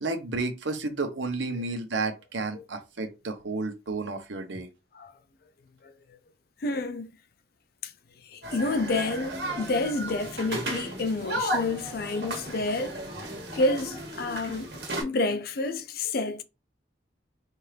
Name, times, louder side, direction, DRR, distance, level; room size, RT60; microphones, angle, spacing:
voice 1, 0.0-4.7, right 3 dB, 85° right, 0.9 m, -31 dB
voice 2, 6.6-7.1 7.8-7.9 8.3-13.1 13.3-14.7 15.0-16.4, left 2 dB, 55° left, 0.5 m, -29 dB
sound 1, 8.4-15.0, right 1 dB, 65° right, 1.3 m, -34 dB
4.4 x 2.5 x 3.3 m
head